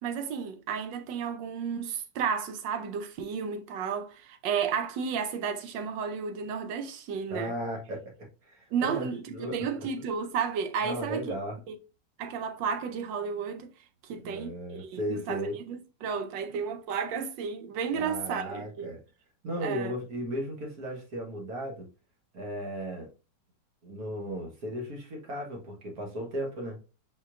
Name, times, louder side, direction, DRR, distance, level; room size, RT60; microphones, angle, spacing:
voice 1, 0.0-7.5 8.7-11.3 11.7-11.8 12.2-13.7 14.0-18.9 19.6-19.9, right 6 dB, 80° right, 1.4 m, -32 dB
voice 2, 7.3-8.1 8.4-9.6 10.0-10.1 10.8-11.6 14.1-15.6 17.9-19.0 19.4-21.9 22.3-23.1 23.8-26.8, equal, 55° right, 1.7 m, -36 dB
5.0 x 4.1 x 2.4 m
omnidirectional pair, 2.0 m